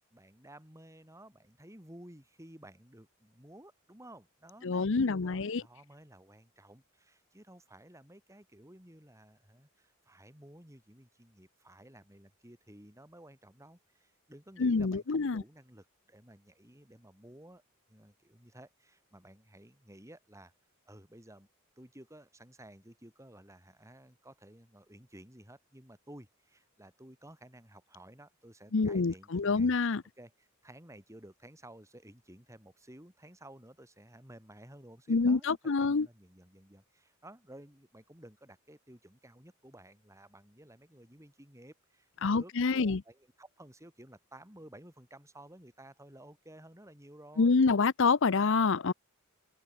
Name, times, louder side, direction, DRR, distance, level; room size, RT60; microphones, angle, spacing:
voice 1, 0.1-17.6 17.9-20.5 20.9-21.5 21.8-29.7 30.2-47.6, right 1 dB, 15° right, 6.1 m, -54 dB
voice 2, 4.6-5.6 14.6-15.4 28.7-30.0 35.1-36.1 42.2-43.0 47.4-48.9, left 4 dB, 65° left, 0.7 m, -27 dB
head